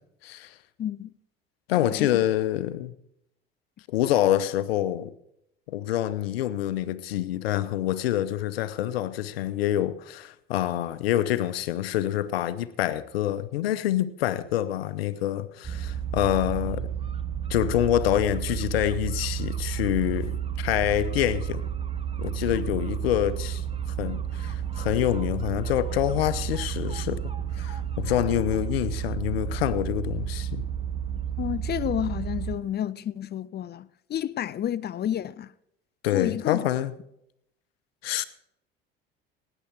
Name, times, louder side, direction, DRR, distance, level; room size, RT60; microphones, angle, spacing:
voice 1, 0.2-0.5 1.7-2.9 3.9-5.1 5.7-16.9 17.5-21.6 22.2-23.6 24.0-30.6 36.0-36.9 38.0-38.3, left 13 dB, 80° left, 0.8 m, -26 dB
voice 2, 0.8-1.1 1.8-2.1 31.4-35.5 36.1-36.7, left 10 dB, 35° left, 0.5 m, -30 dB
sound 1, 15.6-32.6, right 9 dB, 20° right, 1.0 m, -31 dB
16.5 x 10.0 x 4.6 m
hypercardioid pair, 70°, 30 cm